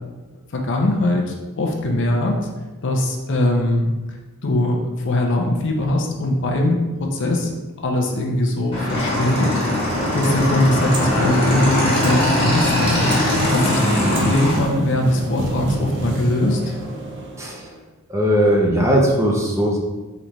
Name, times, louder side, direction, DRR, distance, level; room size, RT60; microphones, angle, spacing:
voice 1, 0.5-2.4 2.8-3.9 4.4-4.8 5.0-7.5 7.8-9.6 10.1-13.0 13.5-13.8 14.1-16.6, left 1 dB, 55° left, 1 dB, 0.6 m, -21 dB
Motorcycle / Engine, 8.7-14.6, left 1 dB, 25° left, 1.2 m, -21 dB
sound 1, 9.5-17.8, right 1 dB, 60° right, 0.8 m, -28 dB
voice 2, 18.1-19.8, equal, 15° right, -2 dB, 0.6 m, -18 dB
3.9 x 3.2 x 3.0 m, 1.2 s
head